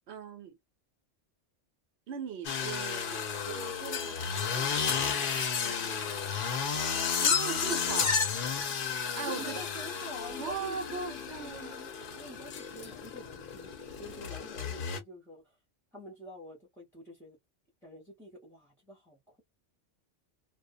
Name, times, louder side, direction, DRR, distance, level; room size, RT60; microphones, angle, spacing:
voice 1, 0.1-0.6 2.1-5.4 6.9-8.2 8.9-9.6 10.3-11.8, right 6 dB, 65° right, 1.0 m, -40 dB
sound 1, 2.4-15.0, left 6 dB, 55° left, 0.7 m, -32 dB
voice 2, 5.6-6.5 9.2-11.9 12.2-15.5 15.9-17.4 17.8-19.4, left 1 dB, ahead, 0.8 m, -48 dB
2.4 x 2.2 x 2.6 m
omnidirectional pair, 1.3 m